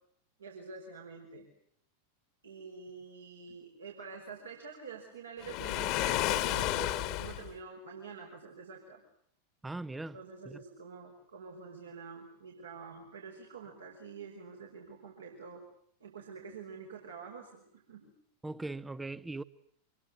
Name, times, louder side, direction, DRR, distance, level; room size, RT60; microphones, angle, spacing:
voice 1, 0.4-1.5 2.4-9.0 10.1-15.6 16.0-18.1, right 5 dB, 70° right, 5.6 m, -47 dB
Waves surf, 5.4-7.5, left 15 dB, 45° left, 1.8 m, -31 dB
voice 2, 9.6-10.2 10.4-10.6 18.4-19.4, right 2 dB, 10° right, 1.1 m, -39 dB
26.5 x 22.5 x 7.9 m
figure-of-eight pair, 90°, 0 cm